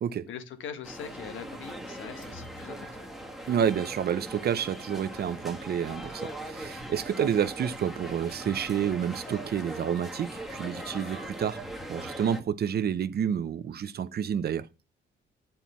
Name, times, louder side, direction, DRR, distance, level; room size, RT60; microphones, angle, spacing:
voice 1, 0.3-3.1, left 7 dB, 75° left, 1.4 m, -42 dB
sound 1, 0.8-12.4, right 1 dB, ahead, 1.5 m, -40 dB
voice 2, 3.5-11.6 11.9-14.7, right 8 dB, 55° right, 0.7 m, -29 dB
9.1 x 4.4 x 5.6 m
cardioid pair, 90°, 20 cm